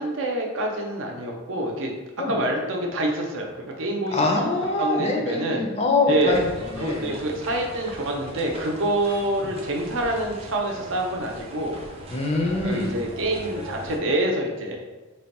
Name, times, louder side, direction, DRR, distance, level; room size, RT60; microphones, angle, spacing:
voice 1, 0.0-1.9 2.3-4.3 4.8-5.7 6.1-6.4 6.8-11.8 12.6-14.8, right 1 dB, 70° right, 1 dB, 0.6 m, -26 dB
voice 2, 4.1-7.1 12.1-12.9, left 2 dB, 30° left, 1 dB, 0.4 m, -24 dB
sound 1, 6.3-14.0, right 1 dB, 30° right, 0.5 m, -40 dB
3.3 x 2.2 x 4.1 m, 1.2 s
head